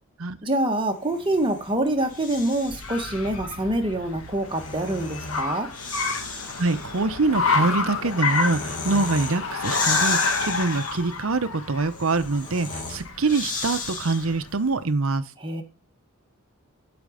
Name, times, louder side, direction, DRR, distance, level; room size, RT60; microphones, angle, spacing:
voice 1, 0.4-5.7 15.4-15.6, right 1 dB, 25° right, 1.4 m, -25 dB
Breathing, 1.0-3.0 4.2-14.5, left 4 dB, 40° left, 2.0 m, -34 dB
Car, 1.7-14.6, left 3 dB, 70° left, 1.7 m, -29 dB
voice 2, 6.2-15.2, right 3 dB, 70° right, 0.8 m, -25 dB
11.5 x 5.1 x 5.1 m
head